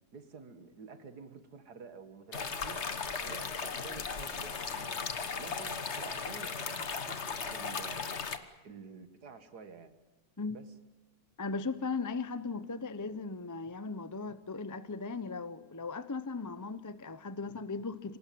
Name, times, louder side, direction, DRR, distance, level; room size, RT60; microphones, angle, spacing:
voice 1, 0.1-5.0 5.4-8.1 8.6-9.9 10.5-10.7, right 5 dB, 85° right, 2.2 m, -50 dB
sound 1, 2.3-8.4, left 5 dB, 45° left, 1.6 m, -37 dB
voice 2, 11.4-18.2, left 4 dB, 20° left, 0.5 m, -37 dB
26.5 x 18.5 x 9.3 m
omnidirectional pair, 1.7 m